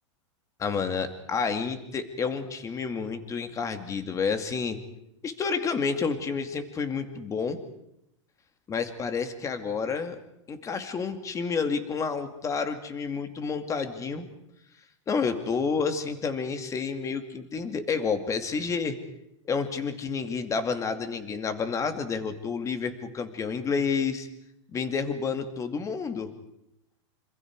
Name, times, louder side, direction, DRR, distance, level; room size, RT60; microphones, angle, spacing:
voice 1, 0.6-4.8 5.2-7.6 8.7-10.2 10.5-14.3 15.1-19.0 19.5-24.3 24.7-26.3, left 5 dB, 20° left, 8 dB, 2.4 m, -29 dB
27.0 x 26.5 x 4.8 m, 0.80 s
supercardioid pair, 140°, 16 cm